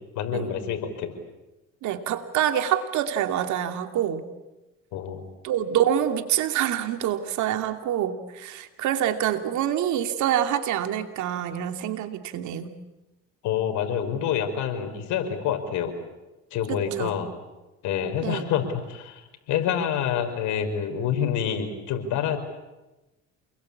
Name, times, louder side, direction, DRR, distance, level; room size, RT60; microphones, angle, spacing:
voice 1, 0.2-1.1 4.9-5.2 13.4-15.9 16.5-17.3 17.8-22.4, left 8 dB, 75° left, 6 dB, 5.1 m, -27 dB
voice 2, 1.8-4.2 5.4-12.7 16.7-17.2 18.2-18.4, right 10 dB, 70° right, 7 dB, 2.7 m, -26 dB
28.5 x 21.5 x 8.7 m, 1.1 s
supercardioid pair, 90°, 30 cm